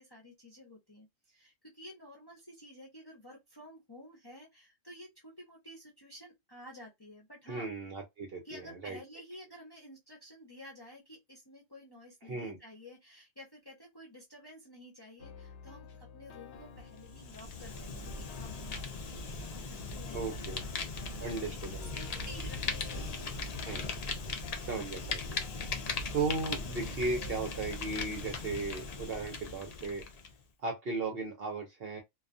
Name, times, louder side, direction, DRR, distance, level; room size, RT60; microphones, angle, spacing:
voice 1, 0.0-7.7 8.4-21.6 21.9-23.4, left 1 dB, 25° left, 0.6 m, -52 dB
voice 2, 7.5-9.0 12.3-12.6 20.1-20.6 21.2-21.9 23.6-23.9 24.6-25.4 26.1-30.0 30.6-32.0, right 3 dB, 55° right, 0.8 m, -36 dB
sound 1, 15.2-28.9, left 3 dB, 65° left, 0.8 m, -51 dB
Fire, 17.0-30.3, left 4 dB, 85° left, 0.3 m, -39 dB
2.3 x 2.2 x 2.5 m
omnidirectional pair, 1.3 m